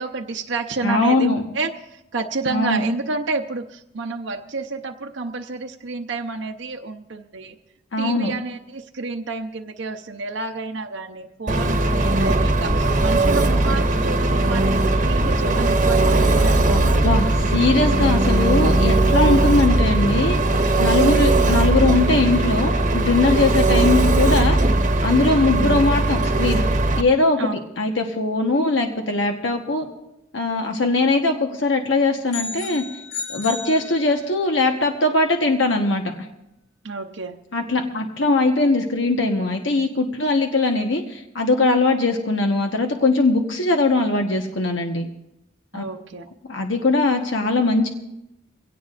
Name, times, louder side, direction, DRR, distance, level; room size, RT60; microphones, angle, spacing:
voice 1, 0.0-7.6 8.0-17.2 27.4-27.5 36.8-37.4 45.7-46.3, right 3 dB, 75° right, 3 dB, 0.7 m, -29 dB
voice 2, 0.8-1.4 2.5-2.8 7.9-8.3 16.7-20.4 20.8-24.6 25.0-26.6 27.0-27.5 27.8-29.9 30.3-32.8 33.3-36.3 37.5-45.1 45.7-45.8 46.5-47.9, left 2 dB, 85° left, 3 dB, 1.2 m, -20 dB
Engine, 11.5-27.0, right 2 dB, 40° right, 1.0 m, -19 dB
sound 1, 15.1-20.6, equal, 50° left, 1.6 m, -32 dB
sound 2, 32.3-34.5, left 4 dB, 65° left, 5.3 m, -33 dB
23.5 x 17.5 x 2.5 m, 0.87 s
head